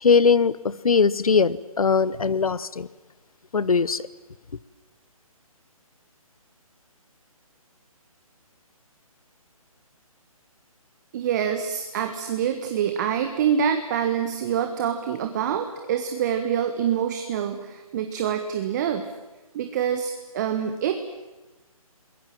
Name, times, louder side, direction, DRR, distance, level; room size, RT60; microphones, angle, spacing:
voice 1, 0.0-2.9 3.5-4.0, left 5 dB, 75° left, 18 dB, 1.1 m, -20 dB
voice 2, 11.1-19.1 19.5-21.1, right 8 dB, 30° right, 7 dB, 1.5 m, -26 dB
30.0 x 21.0 x 7.6 m, 1.1 s
figure-of-eight pair, 150°, 19 cm